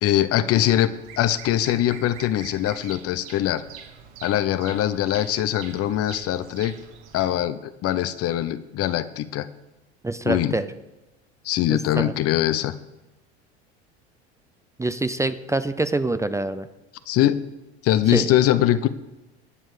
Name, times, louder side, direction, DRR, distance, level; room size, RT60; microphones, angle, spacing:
voice 1, 0.0-3.6 4.2-6.7 7.1-9.5 10.2-10.6 11.4-12.7 17.1-17.4 17.8-18.9, left 12 dB, 45° left, 14 dB, 0.9 m, -22 dB
Bird vocalization bird call bird song, 0.9-7.3, right 7 dB, 60° right, 2.2 m, -44 dB
voice 2, 10.0-10.7 11.7-12.1 14.8-16.7 18.1-18.2, right 2 dB, 10° right, 12 dB, 0.6 m, -25 dB
18.5 x 7.4 x 5.0 m, 1.0 s
hypercardioid pair, 75°, 33 cm